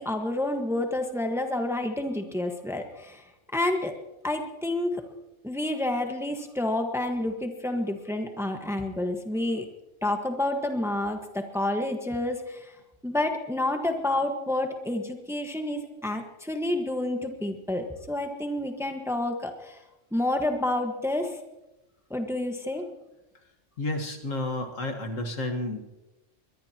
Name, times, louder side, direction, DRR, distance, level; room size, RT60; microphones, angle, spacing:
voice 1, 0.0-3.2 3.5-3.9 4.2-4.9 5.4-9.7 10.0-12.6 13.0-19.8 20.1-21.3 22.1-22.8, left 1 dB, ahead, 4 dB, 1.3 m, -29 dB
voice 2, 23.8-25.8, left 2 dB, 75° left, 2 dB, 2.1 m, -31 dB
22.5 x 21.5 x 3.0 m, 0.99 s
omnidirectional pair, 1.3 m